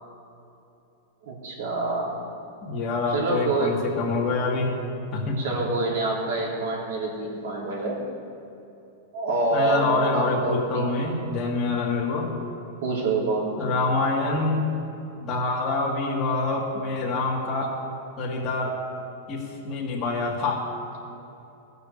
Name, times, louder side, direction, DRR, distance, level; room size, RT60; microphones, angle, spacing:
voice 1, 1.2-2.2 3.1-3.8 5.4-8.0 9.1-10.9 12.8-13.7, right 2 dB, 75° right, -3 dB, 3.5 m, -27 dB
voice 2, 2.6-4.7 5.1-5.4 9.5-12.3 13.6-14.7 15.2-17.8 18.2-18.8 19.3-20.7, left 3 dB, 25° left, -4 dB, 2.1 m, -26 dB
15.5 x 6.9 x 6.8 m, 2.8 s
supercardioid pair, 145°, 0 cm